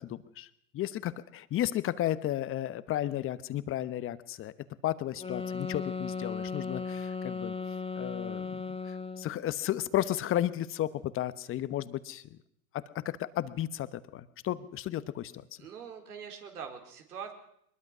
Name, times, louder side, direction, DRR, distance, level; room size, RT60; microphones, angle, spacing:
voice 1, 0.0-4.5 4.8-7.5 8.0-12.4 12.7-15.5, left 13 dB, 30° left, 14 dB, 1.1 m, -33 dB
sound 1, 5.2-9.4, left 5 dB, 15° left, 1.4 m, -36 dB
voice 2, 15.6-17.3, right 7 dB, 75° right, 4 dB, 4.4 m, -43 dB
22.5 x 21.0 x 6.2 m, 0.72 s
hypercardioid pair, 100°, 46 cm